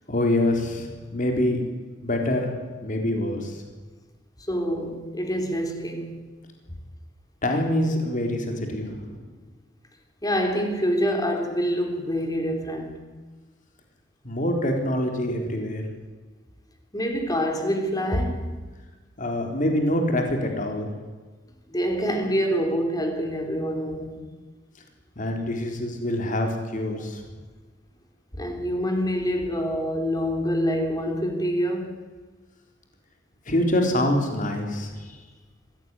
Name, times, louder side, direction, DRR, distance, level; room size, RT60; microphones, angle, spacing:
voice 1, 0.1-1.6 2.0-2.5 2.8-3.6 7.4-9.2 14.2-15.9 19.2-20.9 25.2-27.2 33.5-35.1, left 1 dB, 45° left, 4.0 m, -25 dB
voice 2, 4.5-6.2 10.2-13.1 16.9-18.6 21.7-24.3 28.3-32.0, equal, 20° left, 3.5 m, -26 dB
23.0 x 16.5 x 9.8 m
head